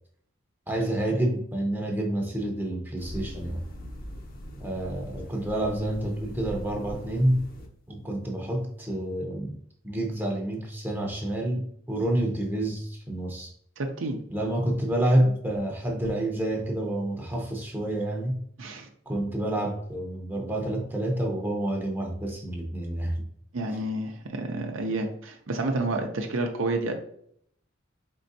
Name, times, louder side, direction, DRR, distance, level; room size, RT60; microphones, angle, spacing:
voice 1, 0.7-3.6 4.6-7.4 7.9-9.6 9.8-13.5 14.3-18.4 19.1-23.2, right 1 dB, 10° right, 0 dB, 0.6 m, -28 dB
sound 1, 3.0-7.7, equal, 45° left, 0.7 m, -41 dB
voice 2, 13.8-14.2 18.6-18.9 23.5-26.9, right 2 dB, 80° right, 4 dB, 0.6 m, -29 dB
4.3 x 3.7 x 2.6 m, 0.66 s
head